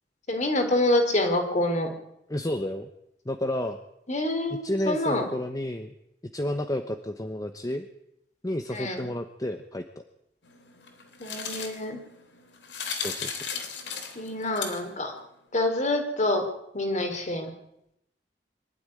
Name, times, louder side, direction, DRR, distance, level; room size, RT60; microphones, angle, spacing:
voice 1, 0.3-1.9 4.1-5.3 8.7-9.1 11.2-12.0 14.2-15.1 15.5-16.4 16.7-17.5, left 1 dB, 45° left, 5 dB, 3.6 m, -26 dB
voice 2, 2.3-2.9 3.2-3.8 4.5-5.9 6.3-7.9 8.4-9.8 13.0-13.4, left 1 dB, 20° left, 7 dB, 1.1 m, -31 dB
sound 1, 10.4-15.1, left 6 dB, 90° left, 3.2 m, -37 dB
23.5 x 12.5 x 9.9 m, 0.82 s
head